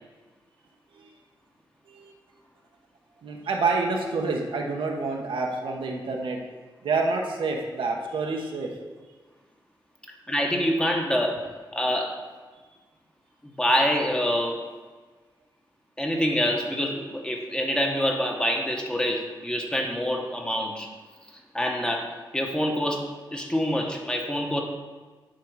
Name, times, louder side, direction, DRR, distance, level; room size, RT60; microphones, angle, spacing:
voice 1, 3.2-6.4 6.8-8.7, right 3 dB, 85° right, 1 dB, 1.0 m, -28 dB
voice 2, 10.3-11.5 11.7-12.2 13.6-14.6 16.0-20.9 21.5-24.6, equal, 10° left, 1 dB, 1.0 m, -26 dB
10.0 x 3.9 x 4.7 m, 1.4 s
wide cardioid pair, 105°, 8 cm